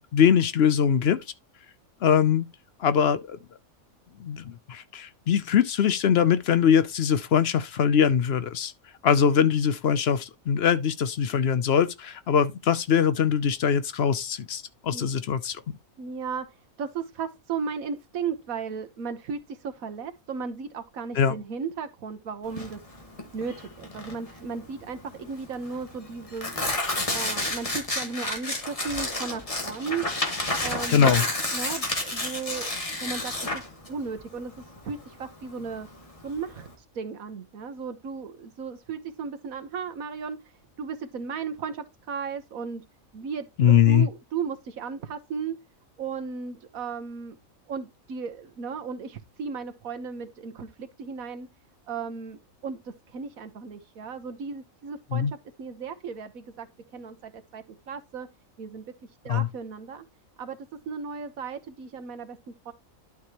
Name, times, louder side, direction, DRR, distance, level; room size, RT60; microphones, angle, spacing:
voice 1, 0.1-1.2 2.0-2.5 2.8-3.4 4.2-8.7 9.0-15.6 21.2-21.3 30.9-31.2 43.6-44.1 55.1-55.3 59.3-59.5, left 8 dB, 60° left, 0.7 m, -22 dB
voice 2, 16.0-16.5 16.8-22.8 23.3-26.5 27.1-30.1 30.6-31.2 31.5-32.7 33.0-33.6 33.9-34.5 34.8-35.9 36.2-36.7 36.9-40.4 40.8-42.8 43.1-45.6 46.0-47.3 47.7-51.5 51.9-56.7 56.9-58.3 58.6-58.9 59.2-60.1 60.4-62.7, right 5 dB, 85° right, 1.5 m, -35 dB
Tearing, 22.5-36.7, left 2 dB, 25° left, 1.7 m, -31 dB
11.5 x 4.8 x 2.9 m
omnidirectional pair, 1.4 m